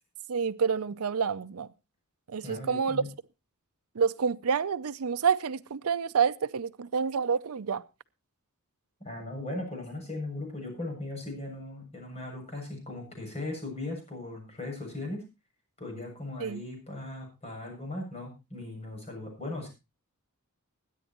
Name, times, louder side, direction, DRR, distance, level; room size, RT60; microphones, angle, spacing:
voice 1, 0.3-1.7 2.3-3.0 4.0-7.8 16.4-16.6, right 6 dB, 70° right, 0.5 m, -28 dB
voice 2, 2.4-3.1 9.0-15.2 15.8-19.7, left 2 dB, 30° left, 7.4 m, -38 dB
21.5 x 10.0 x 3.0 m
head